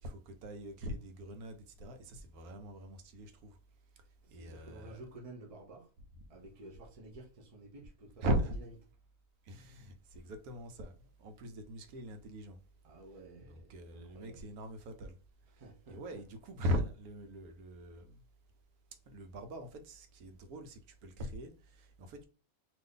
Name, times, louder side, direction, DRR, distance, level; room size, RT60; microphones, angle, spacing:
voice 1, 0.0-3.6 4.3-5.0 6.2-6.3 8.2-8.6 9.4-12.6 13.4-15.2 15.6-18.2 19.1-22.2, equal, 85° right, 1.1 m, -40 dB
voice 2, 4.2-5.9 6.3-8.3 12.8-14.4 15.5-16.2, right 2 dB, 65° right, 0.3 m, -52 dB
2.6 x 2.5 x 3.6 m
omnidirectional pair, 1.5 m